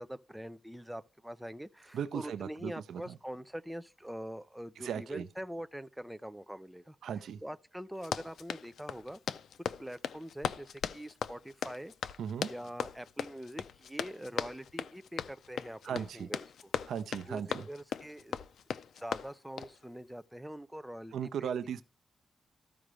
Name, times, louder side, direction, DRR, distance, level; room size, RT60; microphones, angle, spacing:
voice 1, 0.0-7.0 7.4-9.2 9.8-11.9 12.4-16.7 17.3-18.4 18.9-21.1 21.4-21.8, equal, 5° right, 0.4 m, -44 dB
voice 2, 1.9-3.1 4.8-5.3 7.0-7.4 12.2-12.5 15.8-16.3 16.9-17.6 21.1-21.8, right 8 dB, 90° right, 0.6 m, -37 dB
Run, 7.9-19.8, left 8 dB, 85° left, 0.5 m, -39 dB
14.0 x 5.0 x 3.2 m
wide cardioid pair, 160°, 0 cm